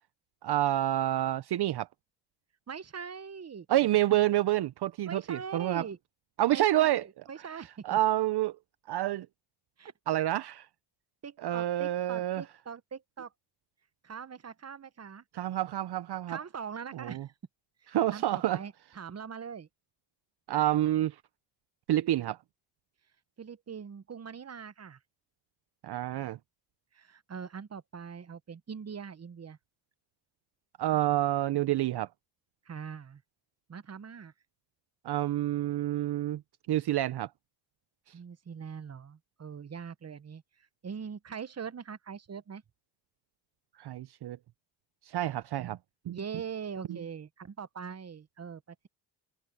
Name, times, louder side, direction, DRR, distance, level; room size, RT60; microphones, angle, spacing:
voice 1, 0.4-1.9 3.7-5.9 6.4-7.0 7.4-8.6 8.9-9.3 10.1-10.7 11.4-12.4 15.3-16.4 16.9-17.3 17.9-18.6 20.5-21.2 21.9-22.4 25.8-26.4 30.8-32.1 35.0-36.4 36.7-37.3 38.1-38.2 43.8-44.4 45.0-45.8 46.1-46.2 46.9-47.0, right 14 dB, 60° right, 0.8 m, -28 dB
voice 2, 2.7-3.7 5.1-6.0 6.5-8.0 9.8-9.9 11.2-13.3 14.0-15.2 16.3-17.3 17.8-19.7 23.4-25.0 26.9-29.6 32.7-33.2 33.7-34.3 38.1-40.4 40.8-42.6 46.1-48.9, right 6 dB, 35° right, 1.1 m, -42 dB
cardioid pair, 70°, 45 cm